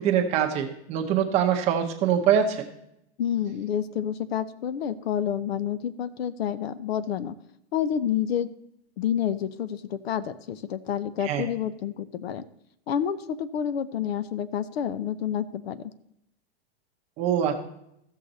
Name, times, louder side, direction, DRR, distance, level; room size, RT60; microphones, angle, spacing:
voice 1, 0.0-2.7 11.2-11.4 17.2-17.6, right 9 dB, 20° right, 3 dB, 0.8 m, -24 dB
voice 2, 3.2-7.3 7.7-8.5 9.0-12.5 12.9-15.8, left 9 dB, 70° left, 16 dB, 0.7 m, -29 dB
15.0 x 6.6 x 4.0 m, 0.79 s
supercardioid pair, 170°, 32 cm